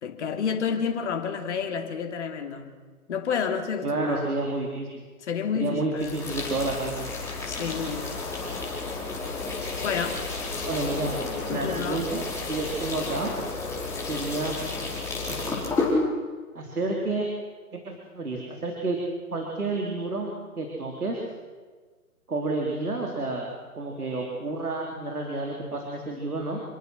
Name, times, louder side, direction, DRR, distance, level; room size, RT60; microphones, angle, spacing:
voice 1, 0.0-2.8 3.1-4.3 5.3-6.2 7.4-8.2 8.9-9.0 9.8-10.3 11.5-12.1, left 6 dB, 50° left, 2.9 m, -30 dB
voice 2, 3.8-5.1 5.5-7.1 10.6-11.2 11.5-13.3 14.1-14.6 15.3-15.6 16.5-17.3 17.7-19.0 19.3-20.3 20.6-21.2 22.3-23.5 23.8-26.6, right 2 dB, 80° right, 4.0 m, -30 dB
sound 1, 6.0-15.9, left 3 dB, 5° left, 5.3 m, -32 dB
28.0 x 23.5 x 6.3 m
figure-of-eight pair, 135°, 44 cm